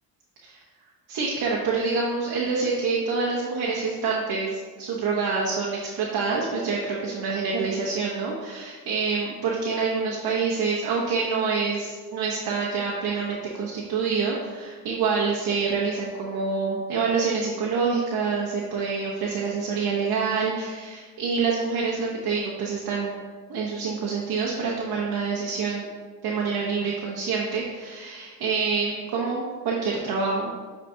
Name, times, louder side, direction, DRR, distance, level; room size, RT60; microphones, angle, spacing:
voice 1, 1.1-23.2 23.5-25.9 26.2-30.5, right 4 dB, 60° right, -4 dB, 1.1 m, -26 dB
9.1 x 4.1 x 2.7 m, 1.4 s
cardioid pair, 85°, 40 cm